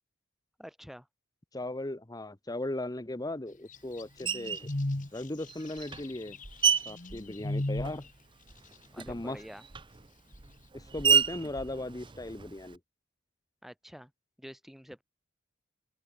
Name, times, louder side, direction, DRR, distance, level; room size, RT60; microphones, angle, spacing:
voice 1, 0.6-1.1 8.9-9.6 13.6-14.1 14.4-15.0, equal, ahead, 2.3 m, -47 dB
voice 2, 1.5-4.7 5.1-6.4 6.9-8.0 9.0-9.4 10.7-12.8, left 1 dB, 20° left, 0.9 m, -37 dB
sound 1, 3.7-8.0, left 1 dB, 40° left, 1.3 m, -35 dB
Screech, 4.3-4.7 5.5-8.2 8.5-12.8, right 7 dB, 25° right, 0.6 m, -31 dB
open air
head